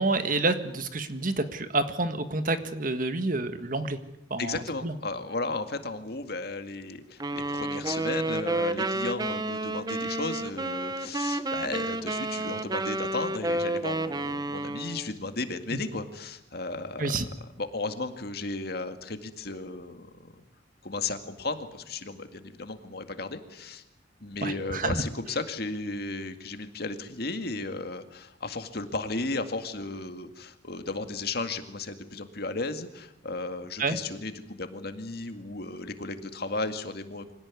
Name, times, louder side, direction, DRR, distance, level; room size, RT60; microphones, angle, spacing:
voice 1, 0.0-4.0 4.3-4.9 15.7-15.8 17.0-17.3 24.4-25.0 33.8-34.0, right 2 dB, 45° right, 10 dB, 1.7 m, -28 dB
voice 2, 4.4-17.2 17.6-20.3 20.8-23.8 24.2-37.3, left 3 dB, 55° left, 8 dB, 2.1 m, -34 dB
sound 1, 7.2-15.1, right 2 dB, 20° right, 1.0 m, -30 dB
25.0 x 17.5 x 9.7 m, 0.86 s
head